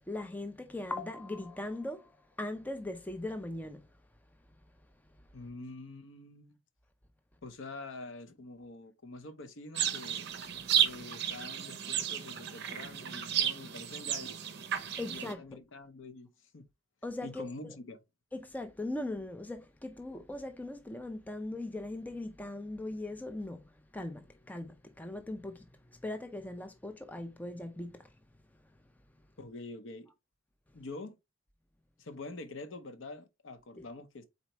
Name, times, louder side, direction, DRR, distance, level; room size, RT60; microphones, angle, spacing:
voice 1, 0.0-3.9 14.7-15.4 17.0-17.7 18.3-25.6 26.0-28.1 33.8-33.9, left 2 dB, 5° left, 0.3 m, -40 dB
voice 2, 5.3-6.6 7.4-10.3 10.8-14.4 15.1-16.6 17.2-18.0 29.4-30.1 30.7-31.2 32.0-34.2, left 2 dB, 60° left, 0.7 m, -46 dB
sound 1, 9.7-15.3, right 9 dB, 50° right, 0.6 m, -33 dB
4.3 x 4.0 x 3.0 m
head